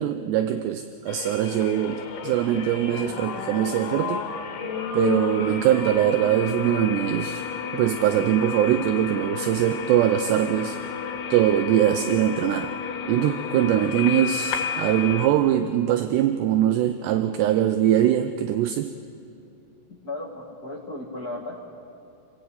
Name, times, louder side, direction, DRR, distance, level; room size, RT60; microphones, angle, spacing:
voice 1, 0.0-4.2 4.9-7.4 7.7-10.8 11.3-12.7 13.1-18.9, right 11 dB, 80° right, 8 dB, 2.5 m, -22 dB
sound 1, 1.1-15.3, left 7 dB, 75° left, 4.5 m, -32 dB
voice 2, 19.9-21.6, left 2 dB, 50° left, -2 dB, 1.1 m, -35 dB
29.0 x 21.0 x 8.4 m, 2.6 s
omnidirectional pair, 5.7 m